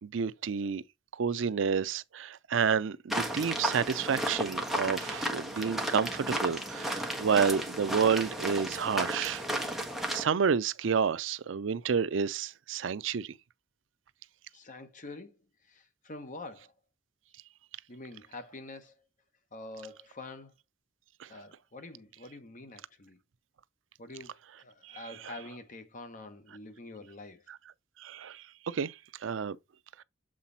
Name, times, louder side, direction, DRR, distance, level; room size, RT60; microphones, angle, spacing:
voice 1, 0.0-0.8 1.2-9.4 10.1-13.3 28.0-28.4 28.7-28.9 29.2-29.6, right 6 dB, 75° right, 0.5 m, -29 dB
sound 1, 3.1-10.2, right 1 dB, ahead, 1.3 m, -33 dB
voice 2, 14.5-16.7 17.9-19.0 19.5-20.5 21.3-23.2 24.0-27.5, left 2 dB, 45° left, 1.2 m, -46 dB
7.5 x 3.9 x 4.1 m
head